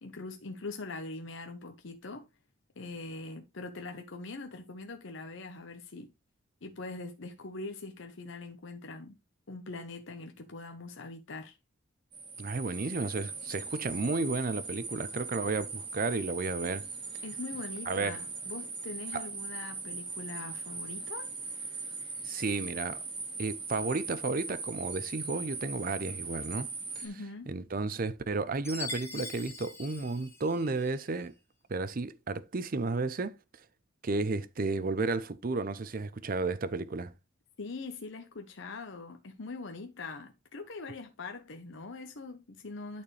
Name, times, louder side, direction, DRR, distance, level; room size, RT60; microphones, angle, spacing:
voice 1, 0.0-2.3 2.8-6.1 6.6-9.2 9.5-11.6 17.2-21.3 27.0-27.6 37.6-43.0, left 3 dB, 65° left, 0.9 m, -42 dB
sound 1, 12.1-27.1, right 4 dB, 25° right, 1.6 m, -40 dB
voice 2, 12.4-16.9 17.9-18.2 19.1-19.2 22.2-23.0 23.4-26.7 27.0-27.1 27.5-31.3 31.7-33.3 34.0-37.1, right 3 dB, 45° right, 0.6 m, -32 dB
Chime, 28.6-31.0, left 3 dB, 10° left, 1.1 m, -42 dB
11.5 x 4.4 x 3.2 m
head